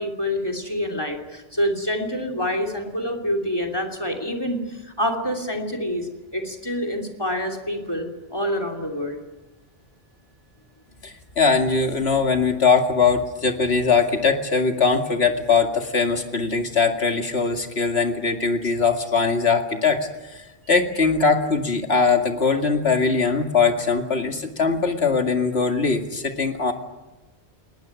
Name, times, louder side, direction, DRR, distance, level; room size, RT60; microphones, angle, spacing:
voice 1, 0.0-9.2, equal, 25° left, 7 dB, 2.9 m, -27 dB
voice 2, 11.0-26.7, left 4 dB, 85° left, 4 dB, 2.5 m, -21 dB
20.5 x 19.5 x 9.6 m, 1.1 s
omnidirectional pair, 1.0 m